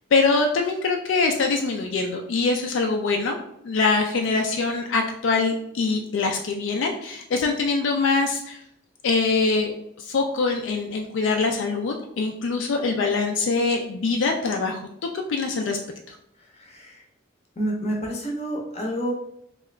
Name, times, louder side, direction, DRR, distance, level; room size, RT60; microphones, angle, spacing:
voice 1, 0.1-3.4 3.6-8.6 9.0-14.8 15.1-15.8 16.1-16.2, left 4 dB, 65° left, 3 dB, 0.3 m, -23 dB
voice 2, 16.4-17.0 17.6-19.1, right 1 dB, 30° left, 0 dB, 0.6 m, -29 dB
2.8 x 2.4 x 3.2 m, 0.76 s
head